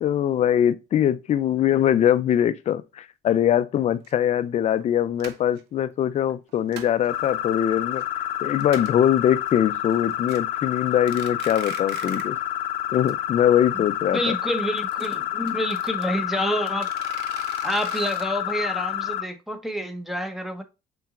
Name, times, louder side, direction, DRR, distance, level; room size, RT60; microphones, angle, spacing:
voice 1, 0.0-8.0 8.4-12.4 12.9-14.3, left 10 dB, 40° left, 0.4 m, -22 dB
sound 1, 4.0-4.1 4.7-4.8 5.2-5.6 6.3-7.1 7.5-8.0 8.3-8.4 8.6-9.1 9.5-9.6 9.9-10.4 10.9-12.4 12.6-12.7 13.1-13.2 13.4-13.5 14.6-16.0 16.7-18.2, right 7 dB, 80° right, 0.8 m, -41 dB
sound 2, 7.1-19.2, left 12 dB, 85° left, 0.6 m, -29 dB
voice 2, 14.1-16.9 17.6-20.6, equal, ahead, 0.7 m, -28 dB
5.7 x 3.9 x 2.4 m
cardioid pair, 110°, 17 cm